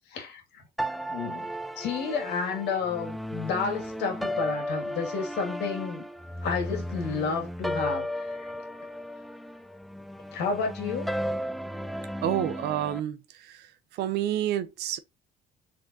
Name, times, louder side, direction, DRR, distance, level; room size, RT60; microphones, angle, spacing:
sound 1, 0.8-13.0, equal, ahead, 0.3 m, -34 dB
voice 1, 1.1-1.5 1.8-6.0 6.4-8.1 8.4-8.5 10.3-11.1, left 5 dB, 80° left, 2.1 m, -30 dB
voice 2, 12.2-13.2 13.4-13.6 14.0-15.0, right 11 dB, 80° right, 0.7 m, -28 dB
4.5 x 3.7 x 2.6 m
cardioid pair, 110°, 17 cm